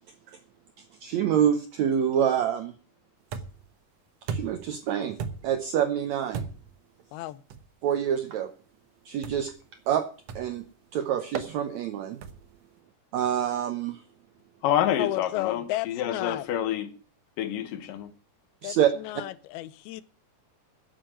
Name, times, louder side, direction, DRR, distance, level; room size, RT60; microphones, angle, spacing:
voice 1, 1.0-2.7 4.3-5.2 5.4-6.4 7.8-8.5 9.0-9.5 9.9-10.1 10.3-10.6 10.9-12.2 13.1-14.0 18.6-18.9, right 9 dB, 90° right, 1.5 m, -26 dB
sound 1, 3.3-3.7 4.3-4.7 5.2-5.6 6.3-6.8 7.5-7.7 9.2-9.6 10.3-10.6 11.3-11.5 12.2-12.6, right 6 dB, 70° right, 1.6 m, -36 dB
voice 2, 7.1-7.4 15.0-16.5 18.6-20.0, left 15 dB, 85° left, 2.6 m, -33 dB
voice 3, 14.6-17.0 17.4-18.1, left 11 dB, 70° left, 2.6 m, -28 dB
9.9 x 8.0 x 8.9 m
omnidirectional pair, 4.4 m